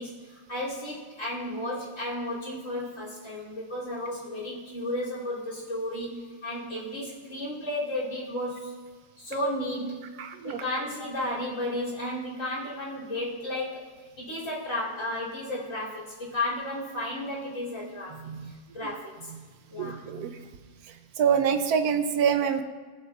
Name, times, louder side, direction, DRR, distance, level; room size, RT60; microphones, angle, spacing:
voice 1, 0.0-8.7 9.2-10.0 10.4-13.8 14.2-18.2 18.7-19.3 19.7-20.0, left 1 dB, 50° left, -6 dB, 3.4 m, -33 dB
voice 2, 10.2-10.6 18.1-18.5 19.8-20.4 21.2-22.6, right 7 dB, 70° right, 9 dB, 1.0 m, -26 dB
19.0 x 7.3 x 2.4 m, 1.5 s
omnidirectional pair, 1.8 m